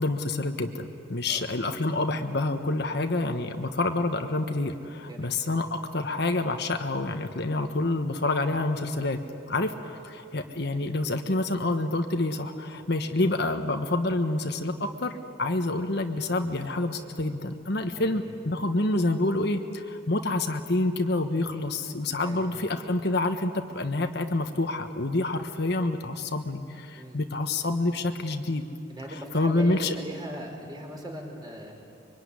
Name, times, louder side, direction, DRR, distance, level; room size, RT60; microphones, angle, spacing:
voice 1, 0.0-9.2 9.5-28.6 29.3-29.9, left 2 dB, 55° left, 6 dB, 1.3 m, -28 dB
voice 2, 17.9-18.3 22.2-22.4 26.9-27.3 28.9-31.7, equal, 20° right, 1 dB, 4.6 m, -39 dB
24.5 x 24.0 x 9.8 m, 2.6 s
head